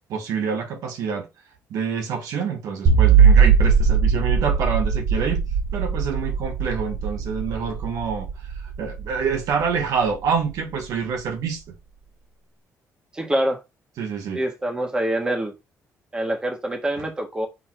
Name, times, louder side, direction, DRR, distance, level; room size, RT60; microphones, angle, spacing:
voice 1, 0.1-1.3 1.7-8.3 8.6-11.6 14.0-14.4 17.0-17.1, right 6 dB, 80° right, 1.6 m, -27 dB
sound 1, 2.9-10.1, right 6 dB, 55° right, 1.5 m, -19 dB
voice 2, 13.1-13.6 14.3-15.5 16.1-17.5, right 1 dB, 15° right, 1.5 m, -25 dB
6.9 x 3.1 x 4.5 m
cardioid pair, 145°, 6 cm